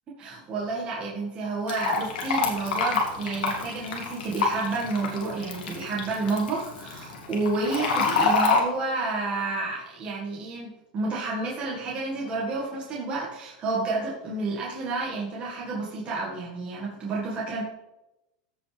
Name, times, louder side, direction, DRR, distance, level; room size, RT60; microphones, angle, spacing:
voice 1, 0.1-17.6, right 3 dB, 25° right, -5 dB, 1.9 m, -30 dB
Fill (with liquid), 1.7-8.6, left 4 dB, 90° left, 2.4 m, -27 dB
15.5 x 5.3 x 3.5 m, 0.93 s
supercardioid pair, 150°, 5 cm